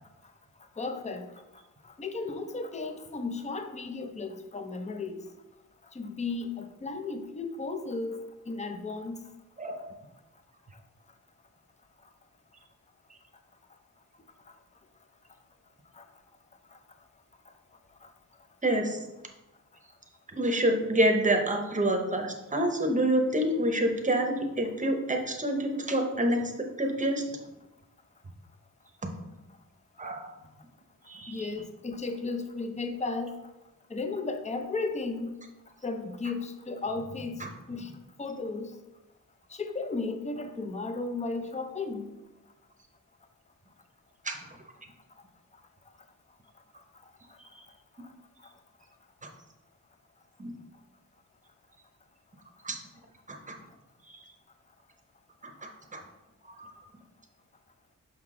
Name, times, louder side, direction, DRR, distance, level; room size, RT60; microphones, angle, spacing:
voice 1, 0.8-1.4 1.8-5.2 5.9-9.2 15.9-16.1 16.7-16.8 18.0-18.1 31.3-33.4 33.9-35.3 35.8-37.9 38.2-38.7 39.5-42.1, left 3 dB, 20° left, 6 dB, 0.5 m, -35 dB
voice 2, 18.6-19.0 20.3-27.2 29.0-29.1 30.0-30.3 31.1-31.5 37.4-37.5 44.2-44.4 47.4-47.5 50.4-50.5 52.6-52.8 53.3-53.6 54.1-54.2 55.4-56.0 56.5-56.7, right 1 dB, 25° right, 3 dB, 0.8 m, -28 dB
5.9 x 5.6 x 3.7 m, 1.0 s
wide cardioid pair, 140°, 33 cm